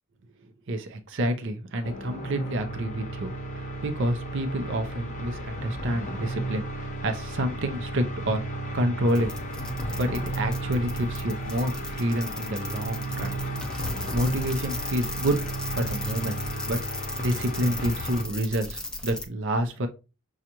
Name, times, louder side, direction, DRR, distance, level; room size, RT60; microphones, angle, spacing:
voice 1, 0.4-8.4 8.7-9.3 10.0-13.4 14.1-15.4 15.7-16.4 16.7-16.8 17.2-19.9, right 1 dB, 55° right, 7 dB, 0.6 m, -28 dB
sound 1, 1.8-18.2, right 1 dB, 35° left, 0.8 m, -34 dB
sound 2, 9.1-19.2, left 1 dB, 5° left, 0.5 m, -37 dB
6.3 x 2.4 x 2.9 m, 0.31 s
head